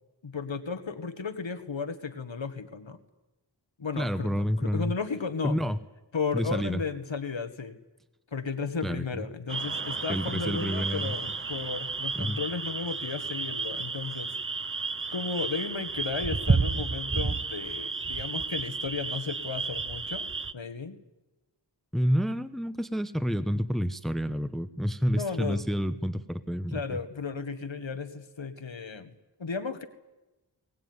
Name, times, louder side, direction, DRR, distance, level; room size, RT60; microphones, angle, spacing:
voice 1, 0.2-3.0 3.8-5.6 6.1-7.8 8.3-14.3 15.1-21.0 25.1-25.7 26.7-29.1 29.4-29.8, left 5 dB, 80° left, 8 dB, 1.7 m, -34 dB
voice 2, 4.0-4.9 5.4-5.8 6.3-6.8 8.8-9.2 10.1-11.1 12.2-12.4 21.9-27.0, equal, ahead, 11 dB, 1.0 m, -29 dB
sound 1, 9.5-20.5, right 4 dB, 30° right, 0.7 m, -32 dB
22.0 x 18.0 x 9.7 m, 1.1 s
wide cardioid pair, 60°, 45 cm